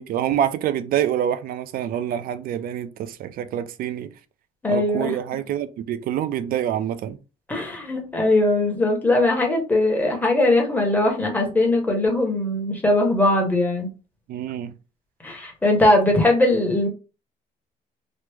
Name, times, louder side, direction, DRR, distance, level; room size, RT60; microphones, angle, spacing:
voice 1, 0.0-4.1 4.7-7.2 14.3-14.7, right 10 dB, 60° right, 0.4 m, -26 dB
voice 2, 4.6-5.1 7.5-13.9 15.2-16.9, left 2 dB, 10° left, 1.1 m, -20 dB
3.0 x 2.0 x 3.4 m
cardioid pair, 110°, 17 cm